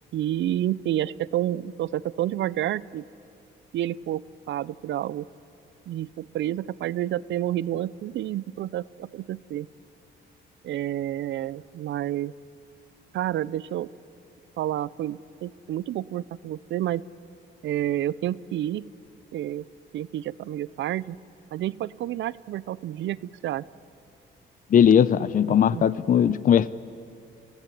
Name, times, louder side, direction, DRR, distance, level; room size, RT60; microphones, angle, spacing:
voice 1, 0.1-3.0 3.7-5.3 5.9-9.7 10.6-12.3 13.1-13.9 14.6-17.0 17.6-18.8 19.3-19.6 19.9-21.2 21.5-23.7 25.5-25.9, right 12 dB, 70° right, 19 dB, 0.5 m, -29 dB
voice 2, 24.7-26.7, left 8 dB, 45° left, 17 dB, 0.5 m, -19 dB
24.0 x 16.5 x 9.9 m, 2.7 s
cardioid pair, 90°, 20 cm